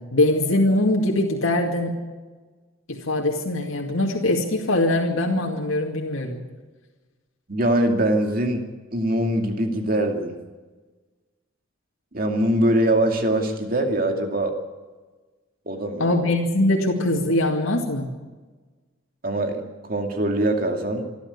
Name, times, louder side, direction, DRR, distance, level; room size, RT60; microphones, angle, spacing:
voice 1, 0.0-2.0 2.9-6.4 16.0-18.1, left 1 dB, 90° left, 0 dB, 2.3 m, -22 dB
voice 2, 7.5-8.7 8.9-10.4 12.1-14.5 15.7-16.2 19.2-19.6 19.9-21.1, right 1 dB, 45° right, 4 dB, 2.4 m, -22 dB
26.0 x 12.0 x 8.2 m, 1.3 s
head